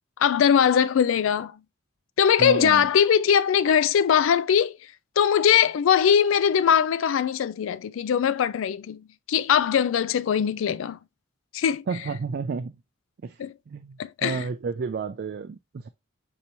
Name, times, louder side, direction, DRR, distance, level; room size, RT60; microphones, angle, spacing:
voice 1, 0.2-1.6 2.2-4.8 5.2-11.0 11.5-11.9 13.4-13.5 14.0-14.4, left 8 dB, 70° left, 0.3 m, -21 dB
voice 2, 2.4-2.9 11.9-12.8 13.2-13.4 13.7-15.9, right 5 dB, 50° right, 0.3 m, -31 dB
5.4 x 3.0 x 2.6 m
head